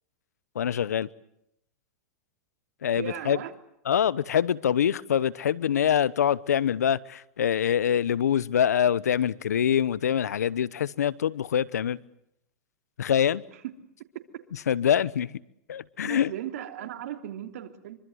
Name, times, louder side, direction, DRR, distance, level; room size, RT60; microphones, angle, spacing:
voice 1, 0.5-1.1 2.8-3.4 3.9-12.0 13.0-13.4 14.7-15.3 15.7-16.3, left 9 dB, 90° left, 1.0 m, -25 dB
voice 2, 2.9-3.5 13.5-13.6 16.0-18.0, right 11 dB, 70° right, 3.1 m, -37 dB
25.5 x 24.5 x 8.0 m
hypercardioid pair, 120°, 9 cm